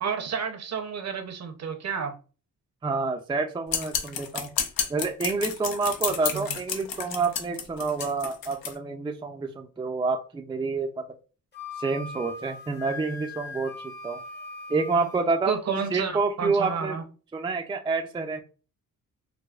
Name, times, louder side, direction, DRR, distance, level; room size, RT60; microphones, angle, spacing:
voice 1, 0.0-2.1 6.3-6.4 15.5-17.0, right 6 dB, 50° right, 0.7 m, -31 dB
voice 2, 2.8-4.5 4.9-11.0 11.8-14.2 14.7-15.6 15.9-17.0 17.3-18.4, right 4 dB, 15° right, 0.4 m, -28 dB
sound 1, 3.7-8.7, left 7 dB, 85° left, 0.7 m, -31 dB
Wind instrument woodwind instrument, 11.5-15.3, left 3 dB, 30° left, 0.8 m, -40 dB
4.7 x 2.0 x 2.3 m
cardioid pair, 100°, 34 cm